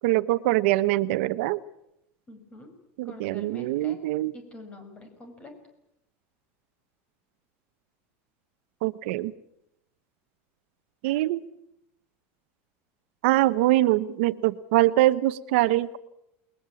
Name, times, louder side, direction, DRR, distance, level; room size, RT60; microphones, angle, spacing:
voice 1, 0.0-1.6 3.0-4.3 8.8-9.3 11.0-11.4 13.2-16.0, right 16 dB, 65° right, 13 dB, 1.0 m, -23 dB
voice 2, 2.3-2.7 3.0-4.0 4.3-5.5, left 2 dB, 15° left, 6 dB, 6.0 m, -45 dB
29.0 x 21.5 x 8.5 m, 0.82 s
supercardioid pair, 175°, 7 cm